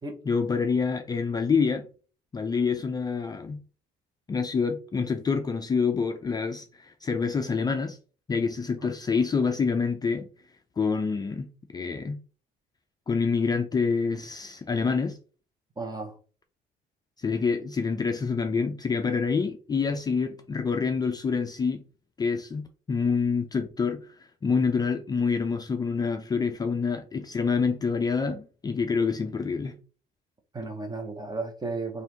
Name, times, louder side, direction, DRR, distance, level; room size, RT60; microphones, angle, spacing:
voice 1, 0.3-1.9 2.3-3.6 4.3-8.0 8.3-10.3 10.8-11.5 11.7-12.2 13.1-15.2 17.2-21.8 22.2-29.7, left 5 dB, 25° left, 0.4 m, -27 dB
voice 2, 15.8-16.2 17.3-17.4 30.5-32.0, right 3 dB, 25° right, 1.1 m, -34 dB
3.4 x 2.5 x 4.5 m
cardioid pair, 110°, 17 cm